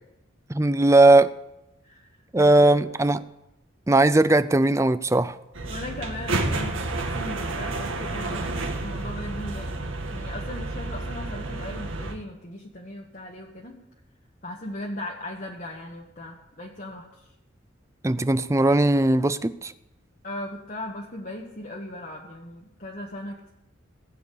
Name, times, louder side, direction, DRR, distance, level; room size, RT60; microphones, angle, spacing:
voice 1, 0.5-1.3 2.3-3.2 3.9-5.4 18.0-19.7, right 2 dB, 15° right, 0.4 m, -18 dB
voice 2, 1.8-2.8 5.7-13.8 14.4-17.3 20.2-23.5, left 1 dB, 40° left, 1.4 m, -38 dB
sound 1, 5.5-12.1, right 2 dB, 80° right, 2.0 m, -30 dB
18.0 x 7.6 x 8.5 m
head